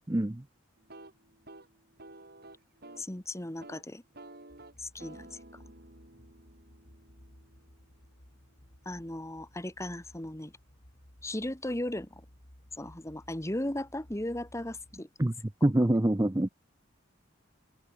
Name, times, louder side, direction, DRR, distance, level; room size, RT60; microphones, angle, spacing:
voice 1, 0.1-0.4 15.2-15.3 15.6-16.5, right 1 dB, 15° right, 0.6 m, -25 dB
sound 1, 0.8-3.1 3.5-3.8 4.1-8.0, right 2 dB, 50° right, 5.0 m, -52 dB
voice 2, 3.0-4.0 4.8-5.3 8.8-10.5 11.2-12.2 12.8-15.1, left 1 dB, 15° left, 1.6 m, -36 dB
sound 2, 4.5-15.0, equal, 45° left, 3.4 m, -58 dB
head